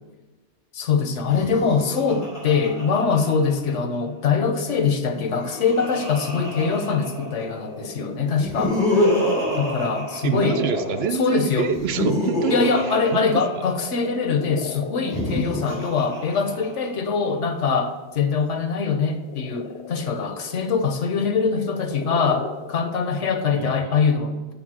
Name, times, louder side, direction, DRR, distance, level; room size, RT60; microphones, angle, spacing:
voice 1, 0.7-8.8 9.5-10.6 11.2-11.7 12.5-24.5, left 5 dB, 90° left, 7 dB, 1.2 m, -23 dB
Laughter, 1.2-3.9 5.0-7.6 8.3-11.0 11.6-14.1 14.9-17.1, left 1 dB, 45° left, 2.9 m, -27 dB
sound 1, 4.4-9.5 10.1-11.8 12.1-15.8 16.2-18.4 18.7-23.7, left 3 dB, 65° left, 1.1 m, -39 dB
voice 2, 10.2-13.2 23.5-23.9, right 7 dB, 65° right, 10 dB, 0.8 m, -27 dB
7.0 x 4.7 x 6.2 m, 1.3 s
omnidirectional pair, 1.2 m